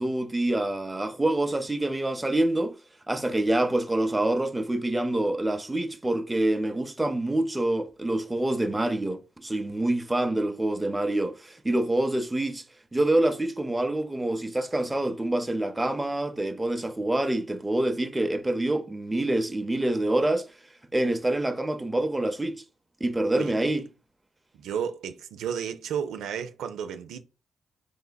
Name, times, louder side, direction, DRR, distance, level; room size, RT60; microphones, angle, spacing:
voice 1, 0.0-2.8 3.1-12.6 12.9-20.5 20.9-22.6 23.0-23.9, right 1 dB, 15° right, 0.5 m, -26 dB
voice 2, 24.6-27.2, right 8 dB, 90° right, 0.3 m, -32 dB
3.8 x 3.2 x 2.2 m
cardioid pair, 65°, 0 cm